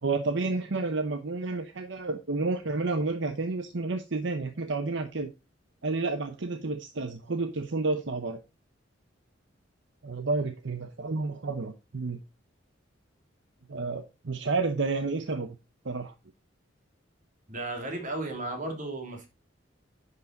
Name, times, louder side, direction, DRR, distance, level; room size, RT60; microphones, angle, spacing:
voice 1, 0.0-5.3 5.8-8.4 10.0-12.2 13.7-15.6 15.8-16.1, right 3 dB, 70° right, 0.9 m, -30 dB
voice 2, 17.5-19.3, right 2 dB, 45° right, 2.8 m, -34 dB
10.0 x 5.5 x 3.9 m
head